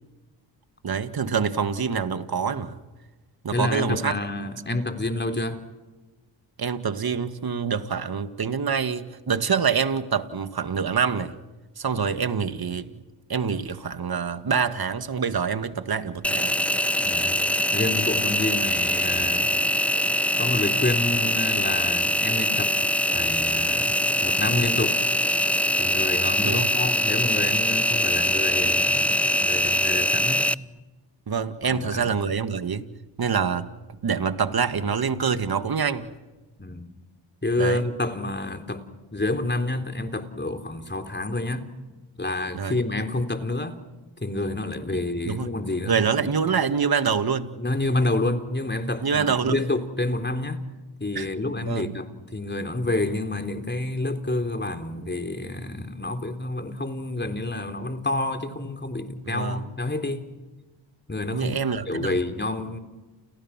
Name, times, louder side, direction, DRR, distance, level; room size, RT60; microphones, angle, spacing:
voice 1, 0.8-2.8 3.4-4.1 6.6-11.3 11.8-12.9 13.3-16.6 19.1-19.3 26.4-26.7 28.6-28.7 31.3-32.9 33.2-33.7 34.0-36.1 37.6-37.9 42.5-42.8 45.3-45.6 45.8-47.5 49.0-49.6 51.2-51.3 51.6-51.9 59.3-59.7 61.3-62.1, right 6 dB, 50° right, 2.2 m, -26 dB
voice 2, 3.5-5.6 17.0-19.6 20.4-22.7 23.1-25.0 25.8-30.4 31.6-32.1 36.6-36.9 37.4-38.8 39.1-41.7 42.2-43.8 44.2-46.0 47.6-50.6 51.0-60.2 61.1-61.5 61.9-62.8, left 2 dB, 20° left, 3.9 m, -28 dB
Engine, 16.2-30.5, equal, 5° left, 0.8 m, -23 dB
30.0 x 29.5 x 6.1 m
supercardioid pair, 50°, 48 cm